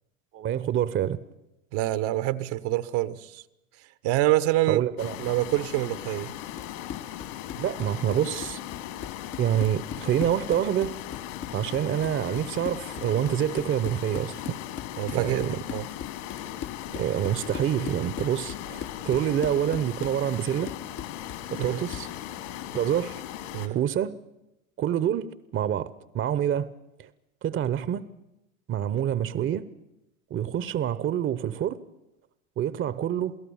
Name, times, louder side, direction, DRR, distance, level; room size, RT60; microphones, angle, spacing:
voice 1, 0.3-1.2 4.7-5.2 7.6-8.6 9.4-10.9 11.5-14.6 15.1-15.6 16.9-20.7 21.5-22.1 22.7-23.2 23.7-24.1 24.8-25.3 25.5-26.7 27.0-27.1 27.4-28.0 28.7-29.6 30.3-31.8 32.6-33.4, right 10 dB, 30° right, 0.9 m, -27 dB
voice 2, 1.7-3.4 4.0-4.8 5.2-6.3 15.0-15.4 15.7-15.9 21.6-21.8 23.5-23.8, right 16 dB, 55° right, 1.2 m, -26 dB
sound 1, 5.0-23.7, left 12 dB, 60° left, 2.5 m, -38 dB
Run, 6.4-22.2, left 9 dB, 30° left, 0.7 m, -41 dB
28.5 x 17.5 x 7.2 m
hypercardioid pair, 90°, 41 cm